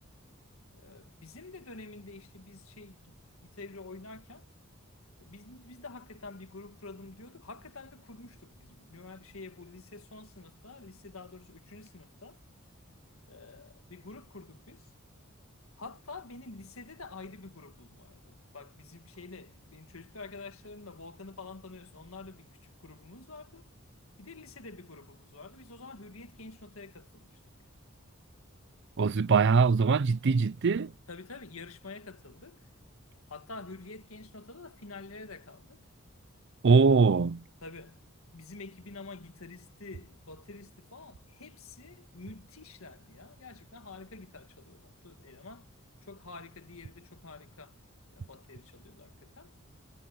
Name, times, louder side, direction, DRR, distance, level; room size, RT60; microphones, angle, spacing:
voice 1, 0.7-4.5 5.2-12.4 12.9-13.0 13.3-14.9 15.8-23.7 24.2-27.4 31.1-32.6 33.3-35.8 37.6-38.1 38.3-45.7 46.0-47.8 48.1-49.5, left 3 dB, 75° left, 1.8 m, -48 dB
voice 2, 29.0-30.9 36.6-37.4, right 4 dB, 55° right, 0.5 m, -22 dB
head